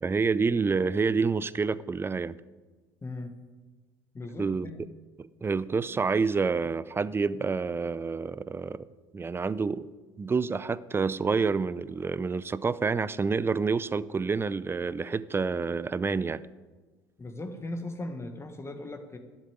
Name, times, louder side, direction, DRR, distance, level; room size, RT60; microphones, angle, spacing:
voice 1, 0.0-2.4 4.4-4.7 5.2-8.9 9.1-9.9 10.2-16.4, right 4 dB, 20° right, 17 dB, 0.5 m, -28 dB
voice 2, 3.0-3.4 4.1-4.8 17.2-19.2, left 2 dB, 20° left, 6 dB, 1.6 m, -38 dB
12.0 x 7.4 x 8.9 m, 1.3 s
hypercardioid pair, 70°, 12 cm